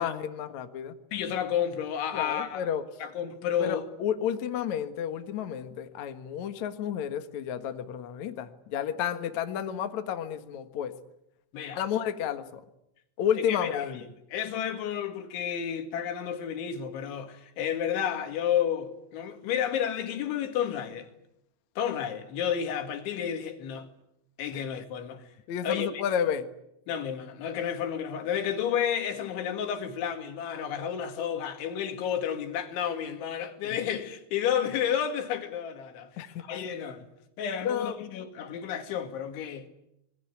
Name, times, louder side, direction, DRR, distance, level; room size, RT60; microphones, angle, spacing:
voice 1, 0.0-1.0 2.1-2.8 3.6-11.0 11.7-12.6 13.2-14.0 24.5-24.6 25.5-26.5 33.6-33.8 36.2-36.4 37.6-37.9, left 9 dB, 60° left, 2.0 m, -31 dB
voice 2, 1.1-2.7 3.0-3.9 11.5-11.8 13.5-14.0 14.3-21.1 21.8-23.9 24.4-25.2 25.6-26.0 26.9-37.0 37.4-39.7, left 9 dB, 75° left, 4.5 m, -31 dB
26.5 x 21.5 x 9.6 m
omnidirectional pair, 5.4 m